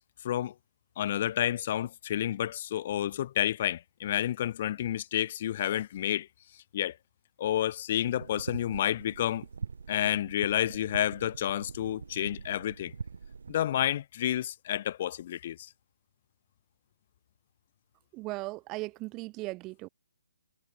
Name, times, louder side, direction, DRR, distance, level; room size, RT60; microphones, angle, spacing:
voice 1, 1.0-6.3 6.7-7.0 7.4-9.5 9.9-12.9 13.5-15.7, left 11 dB, 40° left, 4.0 m, -30 dB
sound 1, 8.1-13.6, right 5 dB, 65° right, 4.3 m, -43 dB
voice 2, 18.1-19.9, right 22 dB, 20° right, 2.7 m, -37 dB
figure-of-eight pair, 140°, 0 cm